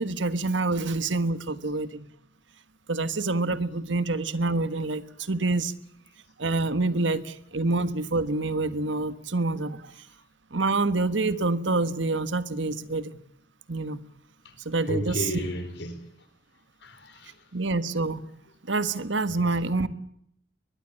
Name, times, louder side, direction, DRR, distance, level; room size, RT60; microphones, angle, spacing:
voice 1, 0.0-2.1 2.9-5.7 6.4-10.1 10.5-13.2 13.7-14.0 14.6-15.4 17.5-18.2 18.6-19.9, right 3 dB, 85° right, 1.5 m, -27 dB
voice 2, 14.8-16.0 16.8-17.3 19.4-19.6, equal, 65° left, 4.7 m, -33 dB
23.0 x 21.0 x 8.7 m
head